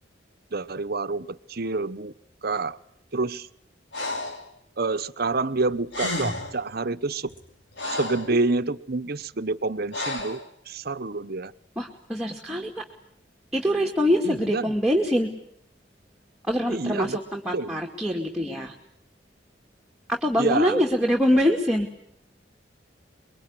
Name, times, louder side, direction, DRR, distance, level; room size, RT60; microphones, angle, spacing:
voice 1, 0.5-2.1 2.4-2.8 3.1-3.5 4.8-7.3 7.9-10.4 10.7-11.5 14.2-14.6 16.7-17.2 17.5-17.7 20.4-20.8, right 3 dB, 55° right, 12 dB, 1.0 m, -27 dB
Breathing, 3.9-4.4 5.6-5.7 5.9-6.6 7.3-8.3 9.9-10.4, left 2 dB, 70° left, 5.3 m, -31 dB
voice 2, 11.8-12.8 13.5-15.3 16.5-18.7 20.1-21.9, equal, 5° right, -1 dB, 2.4 m, -24 dB
26.0 x 22.5 x 9.9 m, 0.70 s
head